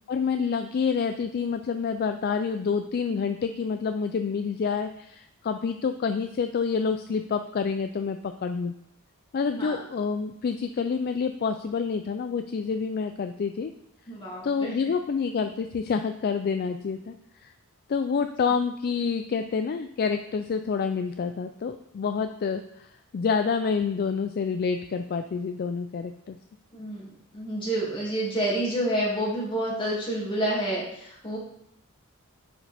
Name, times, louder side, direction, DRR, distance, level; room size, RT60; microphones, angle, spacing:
voice 1, 0.1-8.7 9.3-13.7 14.4-17.1 17.4-17.5 17.9-26.4, left 5 dB, 45° left, 8 dB, 0.3 m, -28 dB
voice 2, 9.5-9.8 14.1-14.9 26.7-27.1 27.3-31.4, right 1 dB, 25° left, -6 dB, 2.4 m, -29 dB
9.5 x 4.9 x 3.4 m, 0.76 s
head